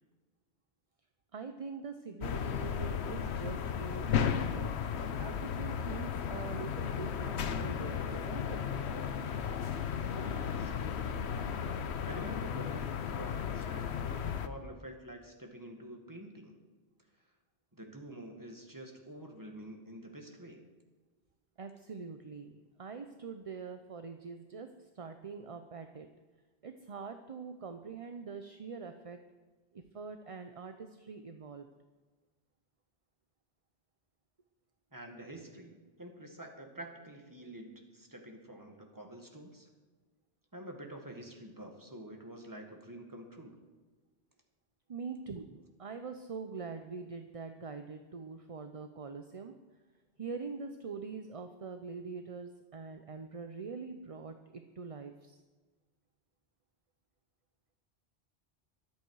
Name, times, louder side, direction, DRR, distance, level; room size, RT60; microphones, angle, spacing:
voice 1, 1.3-4.8 5.2-8.6 21.6-26.1 26.6-29.2 29.7-31.7 44.9-49.5 50.2-55.4, right 5 dB, 40° right, 7 dB, 0.7 m, -44 dB
sound 1, 2.2-14.5, left 7 dB, 80° left, 1.1 m, -35 dB
voice 2, 10.0-10.7 12.0-16.6 17.7-20.6 34.9-39.7 40.5-43.6, right 1 dB, 20° right, 3 dB, 1.8 m, -48 dB
23.0 x 8.5 x 4.8 m, 1.3 s
omnidirectional pair, 1.1 m